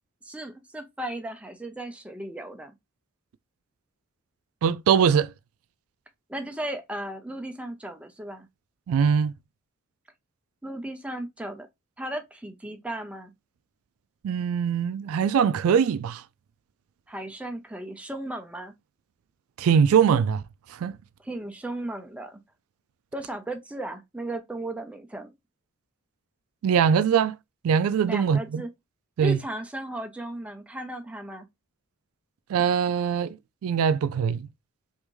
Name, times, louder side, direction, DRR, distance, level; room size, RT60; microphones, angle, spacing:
voice 1, 0.2-2.8 6.3-8.5 10.6-11.7 12.0-13.3 17.1-18.7 21.2-22.4 23.1-25.3 28.1-28.7 29.2-31.5, right 1 dB, 5° right, 0.5 m, -35 dB
voice 2, 4.6-5.3 8.9-9.3 14.2-16.2 19.6-20.4 20.7-21.0 26.6-27.4 27.6-28.6 29.2-29.4 32.5-34.5, right 7 dB, 85° right, 0.3 m, -22 dB
3.4 x 2.6 x 3.0 m
head